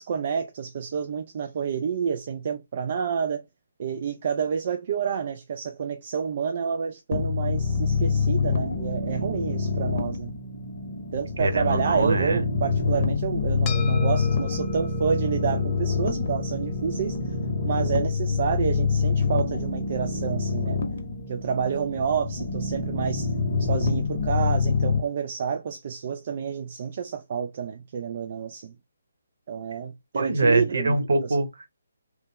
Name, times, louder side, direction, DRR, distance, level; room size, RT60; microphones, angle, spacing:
voice 1, 0.0-3.4 3.8-10.3 11.1-17.2 17.6-20.8 21.3-23.3 23.6-28.7 29.5-31.0, right 7 dB, 45° right, 0.3 m, -29 dB
sound 1, 7.1-25.0, left 4 dB, 50° left, 0.7 m, -26 dB
voice 2, 11.4-12.4 30.1-31.7, right 2 dB, 60° right, 0.9 m, -23 dB
sound 2, 13.6-22.2, left 10 dB, 20° left, 0.5 m, -43 dB
3.1 x 2.0 x 3.6 m
figure-of-eight pair, 140°, 0 cm